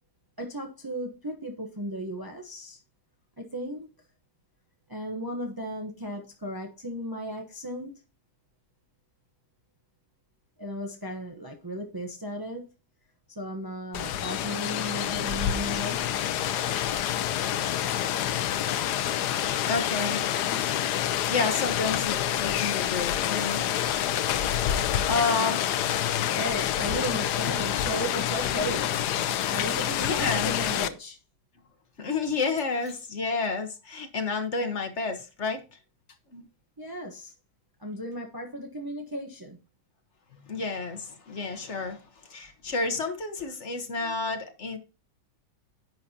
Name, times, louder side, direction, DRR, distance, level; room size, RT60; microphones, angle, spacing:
voice 1, 0.4-2.8 3.4-3.9 4.9-7.9 10.6-12.7 13.3-16.0 25.4-25.5 26.3-28.9 29.5-31.2 36.8-37.3 37.8-39.6, equal, 30° right, 0.3 m, -35 dB
Rain, 13.9-30.9, left 11 dB, 70° left, 1.0 m, -27 dB
voice 2, 19.7-20.3 20.9-23.7 25.0-25.6 30.0-30.5 32.0-35.8 36.3-36.4 40.4-44.8, left 4 dB, 40° left, 1.2 m, -30 dB
10.5 x 7.5 x 2.8 m
omnidirectional pair, 2.3 m